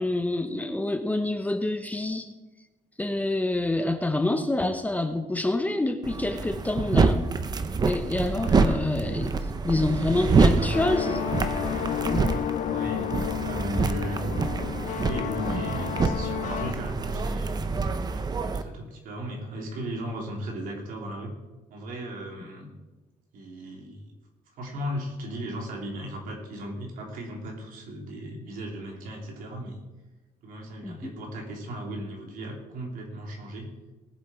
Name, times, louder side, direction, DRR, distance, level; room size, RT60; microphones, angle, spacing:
voice 1, 0.0-2.3 3.0-7.2 7.9-9.3 9.6-11.2 12.1-12.2 30.8-31.1, left 2 dB, 10° left, 7 dB, 0.9 m, -27 dB
sound 1, 6.0-18.6, right 4 dB, 30° right, 0.7 m, -26 dB
voice 2, 8.3-9.0 9.9-10.8 12.7-14.4 15.0-21.3 21.7-22.7 23.3-24.1 24.6-29.8 30.4-33.7, equal, 75° right, 1 dB, 3.2 m, -36 dB
sound 2, 10.7-16.7, left 10 dB, 60° left, 0.6 m, -31 dB
19.0 x 7.6 x 4.4 m, 1.1 s
cardioid pair, 135°, 14 cm